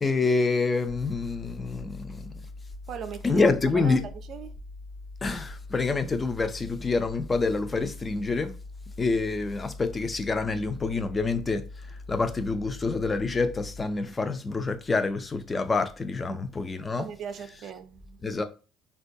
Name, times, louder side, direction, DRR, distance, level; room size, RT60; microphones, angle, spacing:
voice 1, 0.0-2.3 3.2-4.0 5.2-8.5 9.0-11.6 12.1-17.1 18.2-18.4, left 3 dB, 20° left, 0.4 m, -27 dB
sound 1, 0.9-13.8, left 2 dB, 65° left, 0.8 m, -42 dB
voice 2, 2.9-3.5 3.8-4.5 16.3-16.5 17.0-18.2, right 8 dB, 50° right, 0.4 m, -39 dB
4.1 x 2.2 x 2.6 m
cardioid pair, 140°, 0 cm